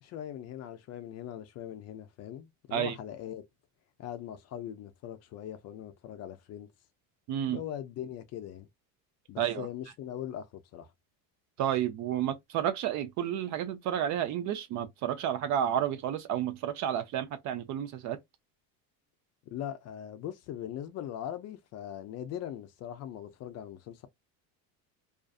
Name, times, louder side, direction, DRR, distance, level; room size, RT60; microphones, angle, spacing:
voice 1, 0.0-3.4 4.0-6.7 7.5-8.7 9.3-10.9 19.5-24.1, left 10 dB, 40° left, 0.4 m, -40 dB
voice 2, 7.3-7.6 9.4-9.7 11.6-18.2, right 10 dB, 45° right, 0.5 m, -31 dB
2.5 x 2.4 x 2.3 m
cardioid pair, 140°, 41 cm